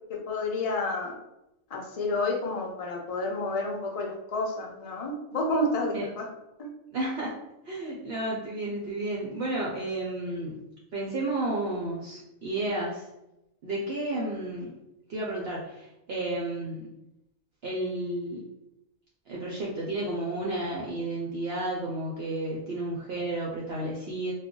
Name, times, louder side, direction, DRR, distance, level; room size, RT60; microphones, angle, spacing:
voice 1, 0.1-1.1 1.7-6.3 6.6-6.7, left 2 dB, 55° left, -1 dB, 0.4 m, -30 dB
voice 2, 6.9-7.3 7.6-10.6 10.9-13.1 13.6-14.7 15.1-16.9 17.6-18.4 19.3-24.3, right 1 dB, 60° right, -4 dB, 0.7 m, -32 dB
2.4 x 2.2 x 3.7 m, 0.88 s
omnidirectional pair, 1.4 m